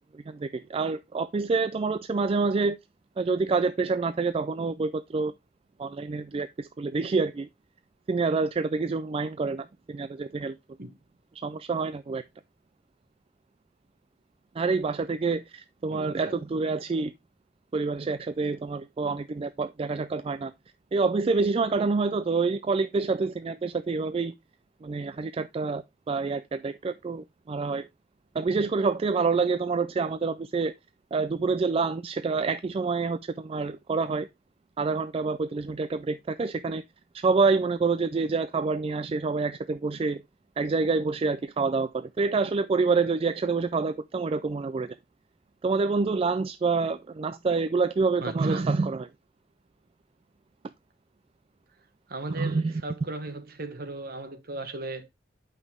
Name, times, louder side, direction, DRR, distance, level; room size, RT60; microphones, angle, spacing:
voice 1, 0.1-2.8 3.2-5.3 5.8-7.5 8.1-10.6 11.4-12.2 14.6-17.1 17.7-20.5 20.9-24.3 24.8-27.9 28.3-30.7 31.1-34.3 34.8-36.8 37.1-40.2 40.6-45.0 45.6-49.1 52.3-52.8, right 4 dB, 30° right, 0.3 m, -27 dB
voice 2, 15.9-16.3 16.9-17.0 48.2-48.7 52.1-55.1, right 2 dB, 55° right, 1.3 m, -37 dB
7.9 x 5.6 x 3.6 m
head